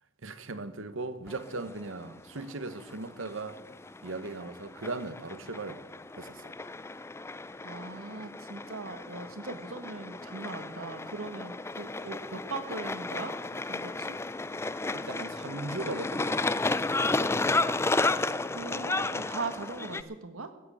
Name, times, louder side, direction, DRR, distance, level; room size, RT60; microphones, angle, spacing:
voice 1, 0.2-3.6 4.0-5.8 6.2-6.5 14.9-16.6, right 3 dB, 65° right, 1.1 m, -38 dB
sound 1, 1.3-20.0, left 3 dB, 10° left, 0.4 m, -33 dB
voice 2, 7.6-13.4 13.6-14.2 18.5-20.5, right 3 dB, 80° right, 1.7 m, -40 dB
15.0 x 8.8 x 8.6 m
head